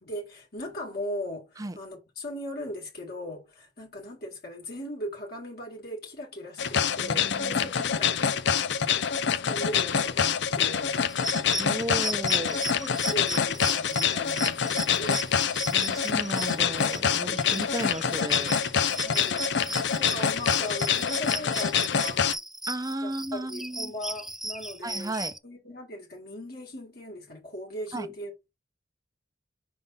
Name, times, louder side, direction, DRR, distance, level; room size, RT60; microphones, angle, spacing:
voice 1, 0.0-8.4 9.3-11.0 12.8-15.3 19.0-19.5 20.0-22.2 23.0-25.1 25.4-28.5, left 1 dB, 60° left, 2.0 m, -38 dB
sound 1, 6.6-22.3, left 7 dB, 75° left, 0.6 m, -26 dB
voice 2, 7.0-7.7 11.6-12.6 15.7-18.5 22.7-23.9 24.8-25.3 27.9-28.1, right 1 dB, 20° right, 0.7 m, -34 dB
sound 2, 11.1-25.4, right 1 dB, ahead, 0.3 m, -36 dB
5.2 x 3.7 x 5.6 m
head